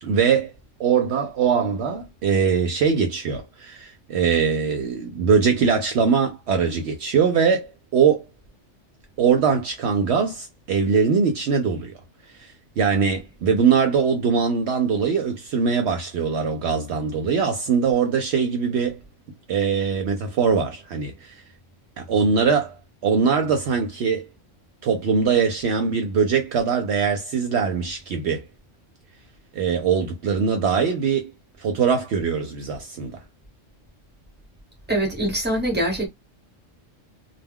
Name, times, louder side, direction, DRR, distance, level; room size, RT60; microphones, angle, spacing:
voice 1, 0.0-0.5 0.8-8.2 9.2-12.0 12.4-19.0 19.5-21.4 22.0-24.3 24.8-28.4 29.5-31.3 31.6-33.2, right 6 dB, 65° right, 0.8 m, -22 dB
voice 2, 34.9-36.1, right 1 dB, 10° right, 1.0 m, -23 dB
2.2 x 2.2 x 3.5 m
omnidirectional pair, 1.3 m